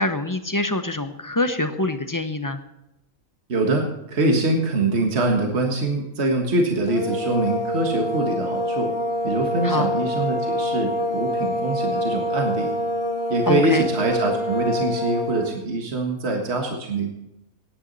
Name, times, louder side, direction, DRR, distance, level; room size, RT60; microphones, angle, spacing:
voice 1, 0.0-2.6 9.6-9.9 13.5-13.9, left 2 dB, 20° left, 8 dB, 0.7 m, -25 dB
voice 2, 3.5-8.9 9.2-12.7 13.3-17.1, right 2 dB, 55° right, 1 dB, 1.9 m, -24 dB
sound 1, 6.9-15.6, left 1 dB, 50° left, 1.3 m, -26 dB
18.5 x 9.8 x 4.1 m, 0.88 s
omnidirectional pair, 1.3 m